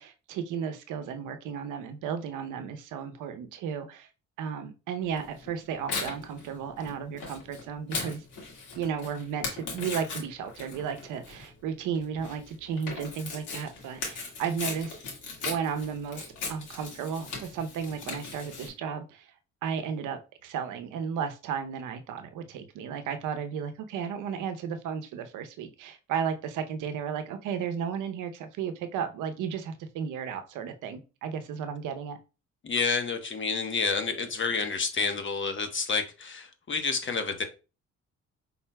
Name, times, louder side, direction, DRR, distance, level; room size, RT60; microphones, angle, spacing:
voice 1, 0.0-4.1 4.4-8.2 8.7-15.0 15.4-19.3 19.6-32.2, right 7 dB, 85° right, 9 dB, 0.7 m, -34 dB
Tearing, 5.1-18.7, left 4 dB, 85° left, 1.9 m, -39 dB
voice 2, 32.6-37.4, left 4 dB, 40° left, 6 dB, 1.0 m, -29 dB
5.7 x 3.9 x 2.2 m, 0.31 s
cardioid pair, 90°, 30 cm